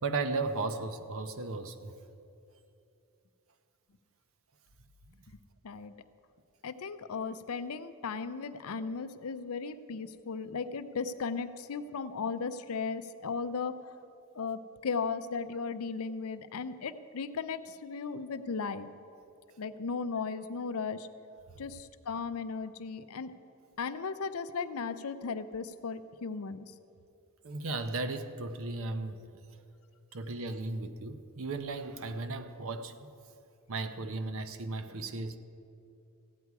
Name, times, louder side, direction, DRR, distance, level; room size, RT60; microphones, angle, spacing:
voice 1, 0.0-1.9 5.1-5.2 27.4-29.2 30.1-33.0 33.7-35.4, right 3 dB, 65° right, 9 dB, 0.7 m, -35 dB
voice 2, 6.6-13.9 14.3-18.9 19.6-21.1 21.6-23.3 23.8-26.7, left 5 dB, 70° left, 12 dB, 0.5 m, -36 dB
15.0 x 9.6 x 4.7 m, 2.7 s
head